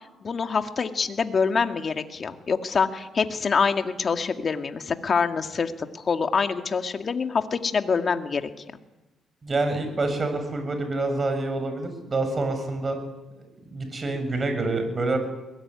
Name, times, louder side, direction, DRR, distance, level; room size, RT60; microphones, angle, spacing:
voice 1, 0.2-8.5, left 5 dB, 45° left, 6 dB, 2.1 m, -25 dB
voice 2, 9.4-13.0 13.7-15.2, right 2 dB, 35° right, 7 dB, 7.2 m, -27 dB
22.0 x 20.5 x 9.8 m, 1.1 s
cardioid pair, 90°, 0 cm